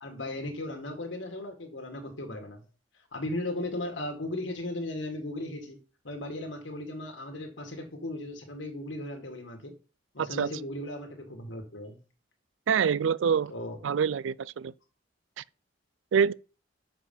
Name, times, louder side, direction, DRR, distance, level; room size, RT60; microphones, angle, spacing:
voice 1, 0.0-2.6 3.1-5.8 6.0-9.7 10.1-12.0 13.5-13.8, left 1 dB, 80° left, 1.8 m, -36 dB
voice 2, 12.7-13.5 13.8-14.7 16.1-16.3, right 7 dB, 85° right, 0.4 m, -25 dB
6.2 x 6.0 x 5.5 m
head